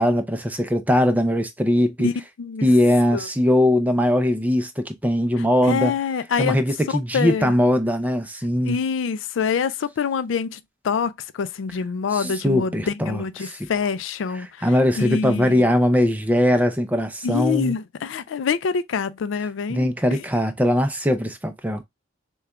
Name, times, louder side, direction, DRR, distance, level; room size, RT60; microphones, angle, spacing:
voice 1, 0.0-2.1 2.6-5.9 6.4-8.8 12.1-13.7 14.3-17.7 19.7-21.8, left 1 dB, 10° right, 0.5 m, -21 dB
voice 2, 5.6-6.6 7.1-7.5 8.6-10.6 10.8-14.7 15.0-15.7 17.2-20.2, left 6 dB, 80° left, 0.4 m, -25 dB
6.6 x 2.3 x 2.3 m
head